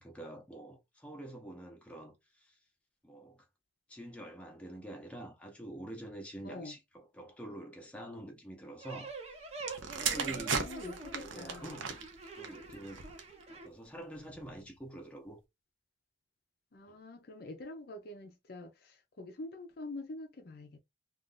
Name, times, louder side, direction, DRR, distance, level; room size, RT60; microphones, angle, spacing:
voice 1, 0.0-2.5 3.0-3.4 3.9-9.1 9.8-10.7 11.1-13.1 13.5-15.4 16.9-17.0, right 1 dB, 5° left, 0.7 m, -47 dB
voice 2, 6.4-6.7 10.3-11.9 16.7-20.8, left 2 dB, 55° left, 0.6 m, -46 dB
sound 1, 8.8-13.7, right 3 dB, 35° right, 0.7 m, -46 dB
sound 2, 9.6-13.4 14.2-14.5, right 6 dB, 90° right, 0.6 m, -37 dB
2.5 x 2.4 x 3.8 m
head